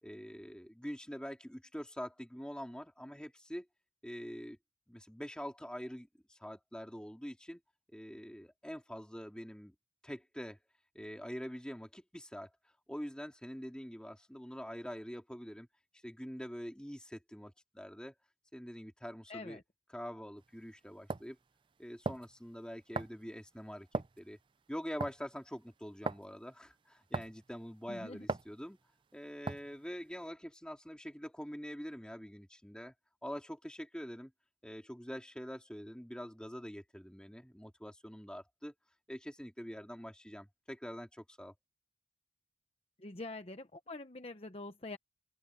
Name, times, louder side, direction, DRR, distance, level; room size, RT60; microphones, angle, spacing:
voice 1, 0.0-3.7 4.0-4.6 4.9-7.6 7.9-9.7 10.0-10.6 10.9-12.5 12.9-15.7 16.0-18.1 18.5-19.6 19.9-21.4 21.8-24.4 24.7-28.8 29.1-32.9 33.2-34.3 34.6-38.7 39.1-41.5, equal, 5° left, 3.3 m, -45 dB
voice 2, 19.3-19.6 27.9-28.3 43.0-45.0, left 2 dB, 35° left, 1.0 m, -45 dB
sound 1, 20.4-20.5 21.1-21.3 22.0-22.3 23.0-23.2 23.9-24.2 25.0-25.3 26.1-26.3 27.1-27.4 28.3-28.5 29.5-29.8, right 3 dB, 30° right, 0.4 m, -37 dB
open air
head